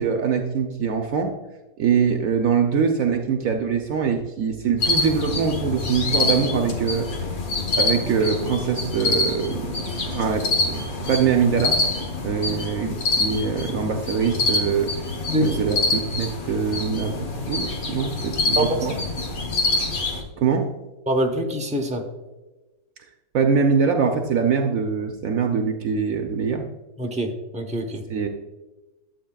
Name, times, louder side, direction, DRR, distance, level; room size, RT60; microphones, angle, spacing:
voice 1, 0.0-1.3 1.8-7.1 7.8-9.7 10.1-11.7 12.2-14.9 15.4-15.8 16.1-18.9 20.4-20.7 23.3-26.6 28.1-28.3, right 6 dB, 65° right, 4 dB, 1.0 m, -23 dB
sound 1, 4.8-20.2, left 3 dB, 65° left, 1.6 m, -26 dB
voice 2, 18.6-19.0 21.1-22.0 27.0-28.0, right 1 dB, 10° right, 3 dB, 0.5 m, -24 dB
11.5 x 8.0 x 2.3 m, 1.1 s
omnidirectional pair, 1.7 m